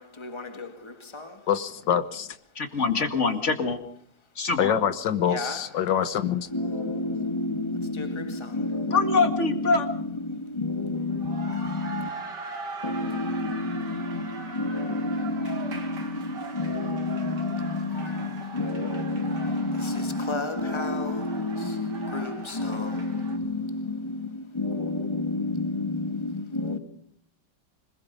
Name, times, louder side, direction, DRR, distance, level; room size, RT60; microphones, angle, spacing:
voice 1, 0.0-1.5 5.3-5.7 6.5-12.1 12.8-26.8, left 2 dB, 15° left, 1.9 m, -30 dB
voice 2, 1.5-2.3 4.6-6.5, left 8 dB, 85° left, 1.8 m, -25 dB
voice 3, 2.6-3.8 4.4-4.7 8.9-9.8, left 4 dB, 40° left, 2.3 m, -24 dB
sound 1, 11.0-23.4, right 3 dB, 75° right, 3.2 m, -40 dB
26.0 x 21.5 x 5.3 m
omnidirectional pair, 1.9 m